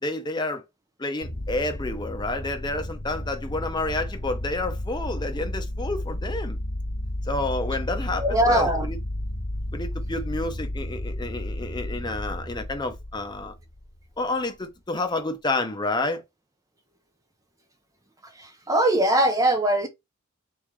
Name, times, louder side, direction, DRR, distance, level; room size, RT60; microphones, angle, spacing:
voice 1, 0.0-0.6 1.0-6.6 7.2-9.0 9.7-13.5 14.2-16.2, left 2 dB, 20° left, 0.7 m, -29 dB
sound 1, 1.2-14.1, left 1 dB, 85° left, 1.7 m, -32 dB
voice 2, 8.2-8.9 18.4-19.9, right 1 dB, 15° right, 0.5 m, -21 dB
4.2 x 3.7 x 3.1 m
head